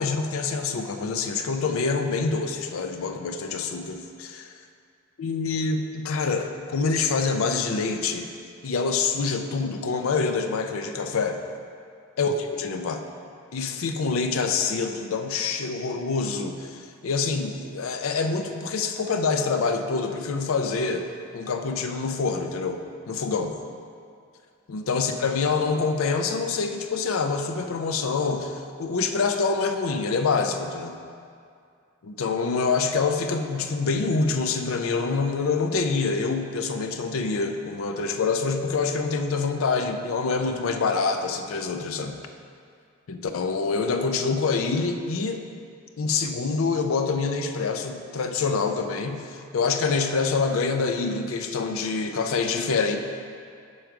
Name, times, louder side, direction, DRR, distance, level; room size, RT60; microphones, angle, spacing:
voice 1, 0.0-4.4 5.2-8.3 8.6-11.4 12.2-13.0 13.5-21.1 21.3-23.5 24.7-31.0 32.0-42.2 43.1-45.4 46.0-53.0, left 4 dB, 75° left, 6 dB, 0.5 m, -26 dB
6.3 x 4.6 x 4.7 m, 2.3 s
head